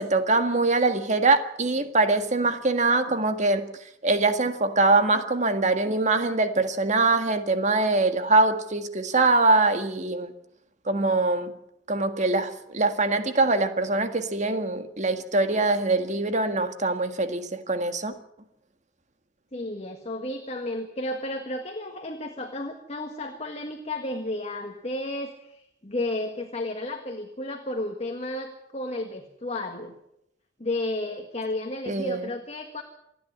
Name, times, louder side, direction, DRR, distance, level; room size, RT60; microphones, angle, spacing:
voice 1, 0.0-3.6 4.0-10.3 10.9-11.5 11.9-18.1 31.9-32.3, right 3 dB, 40° right, 8 dB, 1.8 m, -23 dB
voice 2, 19.5-30.0 30.6-32.8, left 1 dB, 35° left, 4 dB, 1.8 m, -32 dB
27.5 x 10.5 x 9.8 m, 0.81 s
head